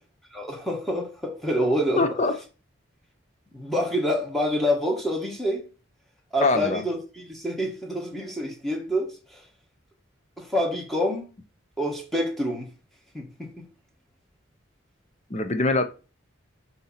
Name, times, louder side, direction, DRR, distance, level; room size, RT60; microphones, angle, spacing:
voice 1, 0.3-2.0 3.5-5.6 6.3-9.4 10.4-11.3 11.8-12.7 13.1-13.6, equal, ahead, 1.4 m, -27 dB
voice 2, 2.0-2.4 6.4-6.8 15.3-15.8, left 2 dB, 35° left, 0.6 m, -23 dB
6.8 x 2.8 x 5.7 m
head